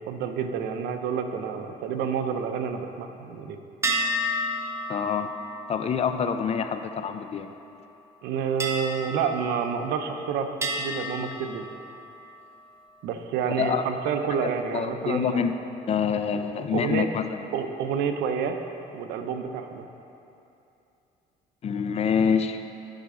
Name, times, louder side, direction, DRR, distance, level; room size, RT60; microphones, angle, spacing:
voice 1, 0.0-3.6 8.2-11.6 13.0-15.4 16.7-17.1 17.5-18.6 18.9-19.8, right 7 dB, 85° right, 7 dB, 0.6 m, -29 dB
sound 1, 3.8-7.5 8.6-10.1 10.6-12.3, equal, 15° right, 0.9 m, -32 dB
voice 2, 4.9-5.3 5.7-7.5 13.6-13.9 14.4-15.5 15.9-17.4 21.6-22.6, left 6 dB, 40° left, 8 dB, 0.5 m, -26 dB
11.5 x 5.8 x 3.7 m, 2.8 s
cardioid pair, 110°, 17 cm